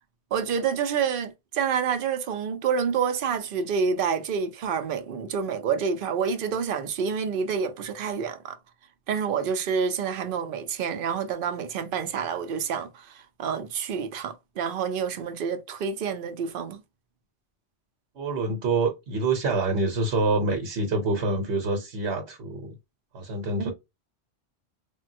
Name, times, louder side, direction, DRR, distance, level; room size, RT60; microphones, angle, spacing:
voice 1, 0.3-8.6 9.1-16.8 23.6-23.7, right 6 dB, 60° right, 0.7 m, -28 dB
voice 2, 18.1-22.7 23.1-23.7, right 3 dB, 75° right, 1.1 m, -26 dB
3.5 x 2.2 x 2.6 m
omnidirectional pair, 1.1 m